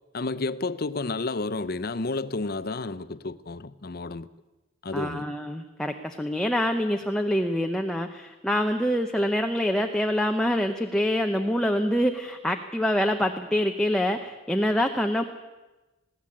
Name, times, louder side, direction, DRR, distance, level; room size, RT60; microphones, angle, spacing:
voice 1, 0.1-4.3 4.8-5.2, left 3 dB, 50° left, 0.7 m, -31 dB
voice 2, 4.9-15.2, equal, 5° left, 0.9 m, -25 dB
21.0 x 16.0 x 8.6 m
head